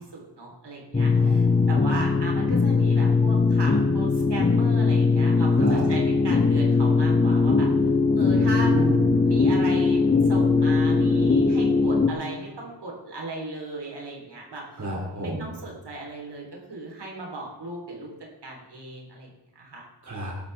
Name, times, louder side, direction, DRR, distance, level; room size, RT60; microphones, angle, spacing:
voice 1, 0.0-7.7 8.1-8.8 9.2-14.8 15.2-18.1 18.4-19.8, right 2 dB, 65° right, -1 dB, 3.5 m, -37 dB
sound 1, 0.9-12.1, left 4 dB, 20° left, 0.8 m, -20 dB
voice 2, 1.1-2.3 5.5-5.8 8.3-9.1 14.8-15.5 20.0-20.3, right 2 dB, 40° right, -2 dB, 2.8 m, -32 dB
16.0 x 12.0 x 3.4 m, 1.2 s
cardioid pair, 65°, 43 cm